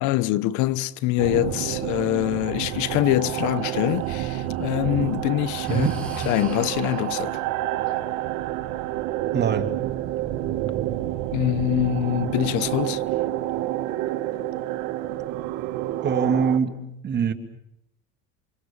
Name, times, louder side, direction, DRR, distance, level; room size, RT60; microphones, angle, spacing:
voice 1, 0.0-5.9 6.3-7.4 11.3-13.0, left 16 dB, 70° left, 1.1 m, -24 dB
sound 1, 1.2-16.6, right 14 dB, 75° right, 2.1 m, -28 dB
Breathing, 3.6-4.8 5.6-7.2, right 2 dB, 5° left, 7.6 m, -39 dB
voice 2, 5.7-6.0 9.3-9.7 16.0-16.7 17.0-17.3, right 6 dB, 35° right, 2.5 m, -23 dB
29.5 x 25.5 x 7.2 m
cardioid pair, 130°, 31 cm